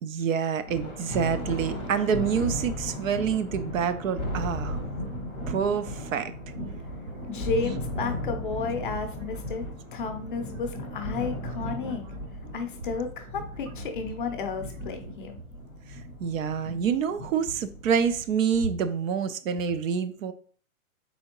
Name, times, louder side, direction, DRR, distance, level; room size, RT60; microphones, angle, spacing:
voice 1, 0.0-4.8 5.5-6.3 15.9-20.3, right 7 dB, 65° right, 0.5 m, -27 dB
Thunder, 0.7-18.4, left 1 dB, 15° right, 0.5 m, -36 dB
voice 2, 7.3-9.6 9.9-12.0 12.5-15.4, left 4 dB, 40° left, 0.5 m, -32 dB
4.2 x 3.6 x 2.8 m
hypercardioid pair, 165°, 44 cm